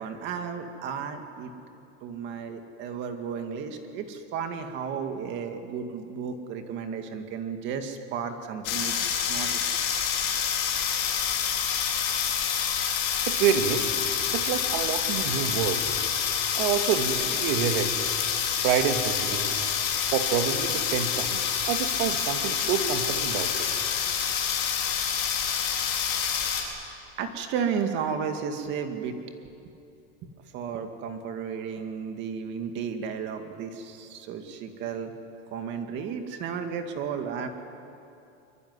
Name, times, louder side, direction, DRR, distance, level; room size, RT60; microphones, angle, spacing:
voice 1, 0.0-1.5 2.0-9.6 26.5-26.7 27.2-29.2 30.2-35.1 35.5-37.5, right 6 dB, 35° right, 6 dB, 2.2 m, -33 dB
sound 1, 8.6-26.6, left 8 dB, 45° left, 4.9 m, -27 dB
voice 2, 13.3-13.9 14.3-15.9 16.5-17.9 18.6-19.7 20.1-23.7, right 8 dB, 55° right, 7 dB, 2.2 m, -27 dB
24.0 x 23.5 x 9.7 m, 2.7 s
supercardioid pair, 175°, 31 cm